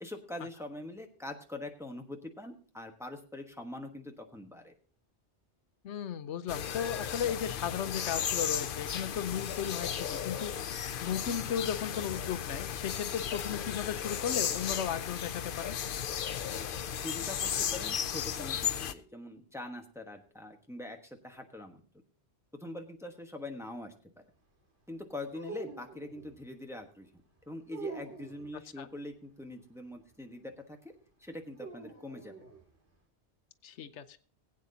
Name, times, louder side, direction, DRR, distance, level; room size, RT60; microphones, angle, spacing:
voice 1, 0.0-4.7 17.0-21.8 22.5-24.2 24.9-27.1 27.5-30.9 31.2-32.4, left 2 dB, 5° right, 3 dB, 1.1 m, -43 dB
voice 2, 5.8-10.5 11.0-15.7 28.8-28.9 33.6-34.2, left 8 dB, 90° left, 12 dB, 1.0 m, -35 dB
sound 1, 6.5-18.9, left 8 dB, 55° left, 0.7 m, -35 dB
sound 2, 25.3-26.4 27.7-28.5 31.6-32.6, right 4 dB, 75° right, 2.6 m, -44 dB
19.5 x 8.7 x 2.8 m, 0.42 s
omnidirectional pair, 1.1 m